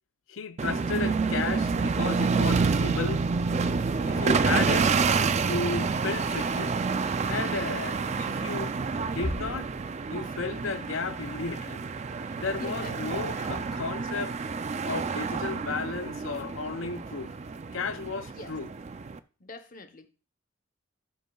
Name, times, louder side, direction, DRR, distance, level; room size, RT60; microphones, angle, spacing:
voice 1, 0.3-3.2 4.0-4.9 5.4-6.7 7.3-8.7 9.1-9.7 10.1-11.8 12.3-14.3 14.8-17.3 17.7-18.7, left 4 dB, 65° left, 0.6 m, -33 dB
sound 1, 0.6-19.2, right 4 dB, 35° right, 0.4 m, -28 dB
sound 2, 9.2-10.6, equal, 50° right, 4.4 m, -37 dB
voice 2, 12.2-13.0 13.3-13.5 18.3-18.6 19.4-20.1, left 2 dB, 40° left, 0.9 m, -44 dB
12.0 x 8.2 x 2.3 m
head